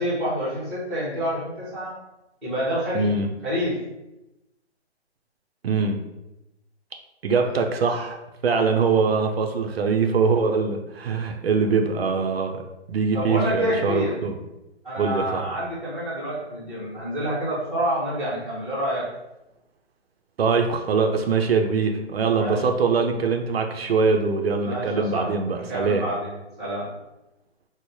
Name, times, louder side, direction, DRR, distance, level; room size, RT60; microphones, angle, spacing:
voice 1, 0.0-1.9 2.4-3.1 3.4-3.8 7.3-7.6 13.1-14.1 14.8-19.0 22.3-22.6 24.6-25.3 25.5-26.9, equal, ahead, -16 dB, 0.6 m, -28 dB
voice 2, 2.9-3.3 5.6-6.0 7.2-8.2 8.4-12.6 12.9-14.3 15.0-15.4 20.4-26.0, right 4 dB, 65° right, 4 dB, 0.5 m, -23 dB
3.1 x 2.0 x 4.1 m, 0.95 s
hypercardioid pair, 160°, 34 cm